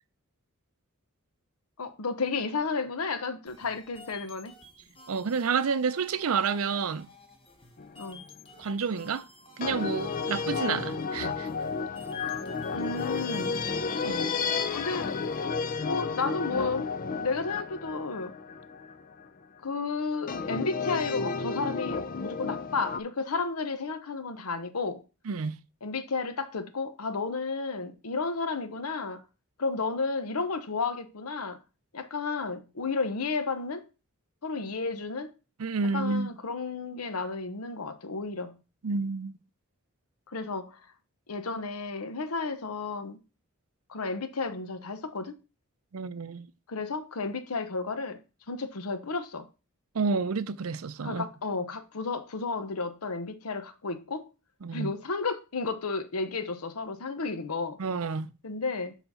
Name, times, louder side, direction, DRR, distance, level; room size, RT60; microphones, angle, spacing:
voice 1, 1.8-4.5 8.0-8.2 12.7-13.5 14.7-15.2 15.8-18.3 19.6-25.0 25.8-29.2 29.6-31.6 31.9-33.9 34.4-35.4 35.9-38.6 40.3-40.8 41.3-43.2 43.9-45.4 46.7-48.2 48.5-49.5 51.0-54.3 54.7-57.8 58.4-59.0, left 4 dB, 85° left, 0.9 m, -32 dB
sound 1, 3.5-15.5, equal, 25° left, 1.2 m, -52 dB
voice 2, 5.1-7.1 8.6-9.2 9.6-11.5 14.0-14.3 25.3-25.6 35.6-36.3 38.8-39.4 45.9-46.5 49.9-51.2 54.6-54.9 57.8-58.3, right 5 dB, 75° right, 0.5 m, -29 dB
Dreamy Granular Horns, 7.8-8.3 9.6-19.2 20.3-23.0, left 5 dB, 40° left, 0.4 m, -32 dB
7.0 x 4.0 x 5.6 m
head